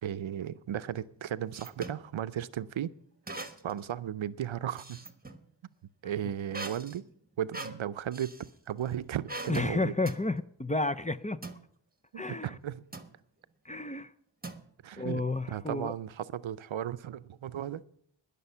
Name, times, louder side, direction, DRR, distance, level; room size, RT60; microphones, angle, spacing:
voice 1, 0.0-2.9 3.6-5.0 6.0-7.1 7.4-8.4 8.7-9.9 12.1-12.8 14.8-15.2 15.5-17.8, right 10 dB, 85° right, 15 dB, 0.6 m, -35 dB
sound 1, 0.9-2.0 3.3-3.8 4.2-5.4 6.5-8.5 9.3-9.7 10.1-10.3 11.4-11.6 12.9-13.2 14.4-15.0, right 2 dB, 20° right, 1.2 m, -42 dB
voice 2, 9.5-11.4 12.2-12.6 13.6-14.1 15.0-15.9, left 2 dB, 15° left, 14 dB, 0.5 m, -31 dB
20.5 x 6.9 x 5.6 m, 0.65 s
wide cardioid pair, 75°, 46 cm